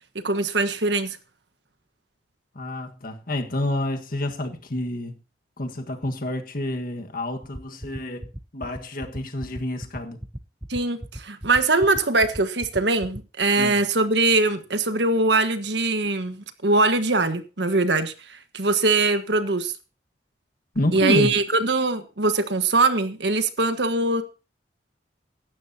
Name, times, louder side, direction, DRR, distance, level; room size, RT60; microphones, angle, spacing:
voice 1, 0.2-1.2 10.7-19.7 20.9-24.2, right 3 dB, 70° right, 1.4 m, -22 dB
voice 2, 2.5-5.1 5.6-10.2 13.6-13.8 20.7-21.4, left 1 dB, 50° left, 1.6 m, -28 dB
sound 1, 7.4-13.4, equal, 5° right, 0.6 m, -35 dB
17.0 x 12.5 x 2.8 m
head